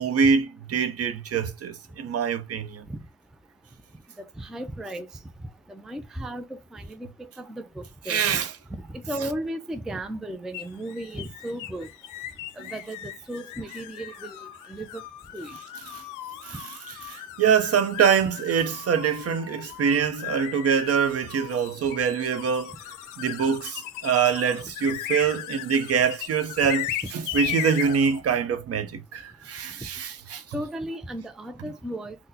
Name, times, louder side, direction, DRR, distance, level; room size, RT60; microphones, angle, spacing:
voice 1, 0.0-2.9 8.1-8.5 15.9-16.0 16.4-16.6 17.1-22.7 23.2-30.4, right 7 dB, 50° right, 0.6 m, -24 dB
voice 2, 4.4-5.1 5.7-8.4 8.9-11.9 12.6-14.4 14.7-15.0 15.3-15.5 30.5-32.2, right 1 dB, ahead, 0.3 m, -35 dB
sound 1, 10.5-28.2, left 13 dB, 90° left, 0.5 m, -37 dB
3.8 x 2.1 x 2.7 m
cardioid pair, 90°, 30 cm